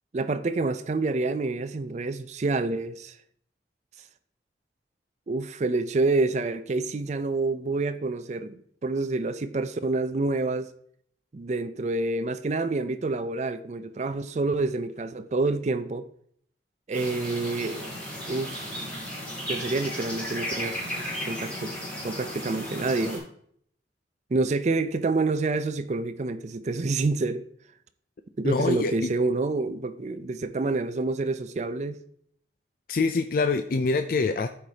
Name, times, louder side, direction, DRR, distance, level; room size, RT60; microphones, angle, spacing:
voice 1, 0.1-3.2 5.3-10.7 11.3-16.0 16.9-17.9 18.3-18.8 19.5-20.8 21.3-21.8 22.0-23.3 24.3-27.4 28.4-32.0, right 3 dB, 40° right, 0.4 m, -28 dB
sound 1, 16.9-23.2, equal, 10° left, 3.1 m, -35 dB
voice 2, 28.4-29.1 32.9-34.5, left 3 dB, 50° left, 0.4 m, -25 dB
12.5 x 5.0 x 2.8 m
head